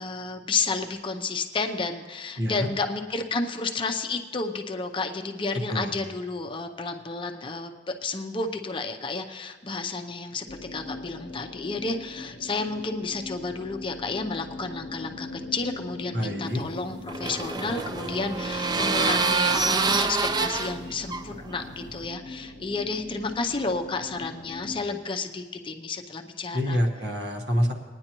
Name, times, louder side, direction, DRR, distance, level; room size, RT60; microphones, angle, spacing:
voice 1, 0.0-26.8, left 3 dB, 30° left, 4 dB, 0.6 m, -31 dB
voice 2, 2.4-2.7 5.7-5.9 16.1-16.6 26.5-27.7, equal, 65° right, 2 dB, 1.4 m, -26 dB
sound 1, 10.5-24.8, left 2 dB, 65° left, 0.7 m, -41 dB
sound 2, 16.5-22.1, right 4 dB, 25° right, 0.4 m, -27 dB
20.5 x 9.8 x 3.0 m, 1.4 s
head